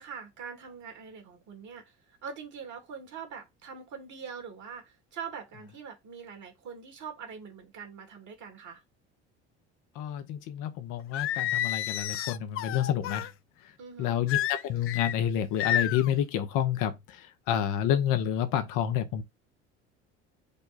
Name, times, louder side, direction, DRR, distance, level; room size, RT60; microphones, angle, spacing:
voice 1, 0.0-8.8 13.8-14.2, right 6 dB, 55° right, 2.0 m, -43 dB
voice 2, 9.9-13.3 13.6-13.7 14.0-19.2, left 10 dB, 65° left, 0.8 m, -29 dB
Singing, 11.1-13.3 14.3-15.1 15.6-16.1, left 12 dB, 40° left, 0.4 m, -30 dB
5.1 x 2.3 x 4.0 m
hypercardioid pair, 70°, 34 cm